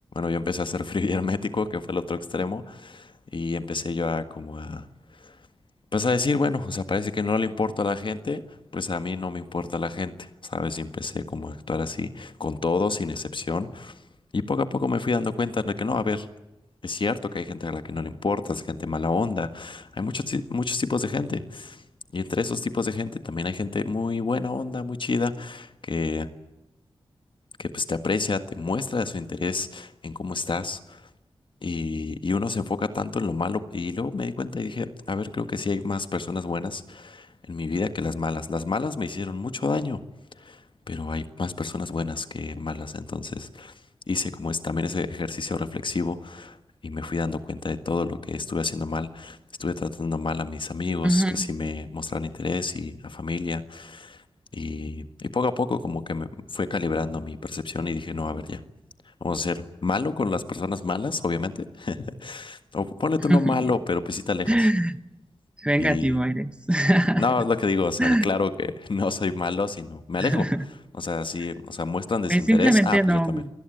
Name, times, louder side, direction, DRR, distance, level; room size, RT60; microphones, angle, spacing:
voice 1, 0.1-4.9 5.2-5.3 5.9-14.0 14.3-16.3 16.8-21.8 22.1-26.3 27.6-31.0 31.6-40.0 40.4-40.6 40.9-43.7 44.1-46.6 46.8-54.2 54.5-58.6 59.2-64.7 65.8-66.2 67.2-70.5 71.0-73.4, left 4 dB, 60° left, 10 dB, 1.7 m, -28 dB
voice 2, 51.0-51.5 63.3-63.6 64.5-65.0 65.6-67.2 68.0-68.2 70.2-70.6 72.3-73.5, right 1 dB, 10° right, 12 dB, 1.2 m, -21 dB
28.0 x 20.0 x 9.3 m, 0.97 s
wide cardioid pair, 70°, 10 cm